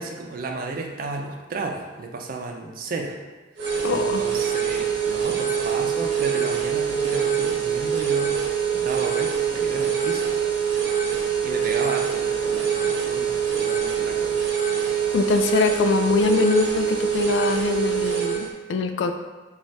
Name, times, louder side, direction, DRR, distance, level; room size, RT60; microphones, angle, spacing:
voice 1, 0.0-3.2 3.6-8.4 8.7-10.3 11.4-14.4, right 3 dB, 55° right, 3 dB, 0.4 m, -33 dB
sound 1, 3.6-18.5, right 8 dB, 80° right, 0.9 m, -24 dB
voice 2, 3.8-4.2 15.1-19.1, left 5 dB, 85° left, 7 dB, 0.3 m, -23 dB
3.2 x 2.4 x 4.0 m, 1.3 s
head